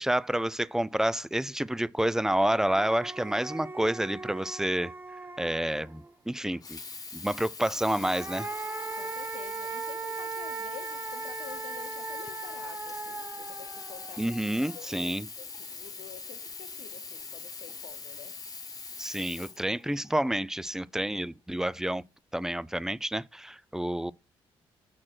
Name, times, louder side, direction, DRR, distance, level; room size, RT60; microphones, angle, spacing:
voice 1, 0.0-4.9 5.4-6.8 7.1-8.5 14.2-15.3 19.0-22.0 22.3-24.1, right 1 dB, 5° right, 0.4 m, -29 dB
sound 1, 2.0-2.1 2.4-6.1 7.7-15.0, right 4 dB, 20° right, 0.9 m, -39 dB
Sink (filling or washing), 6.5-20.3 21.0-21.1, left 4 dB, 35° left, 1.2 m, -42 dB
voice 2, 9.0-14.3 14.7-18.3, left 11 dB, 80° left, 0.9 m, -49 dB
7.5 x 4.3 x 6.2 m
supercardioid pair, 70°, 10 cm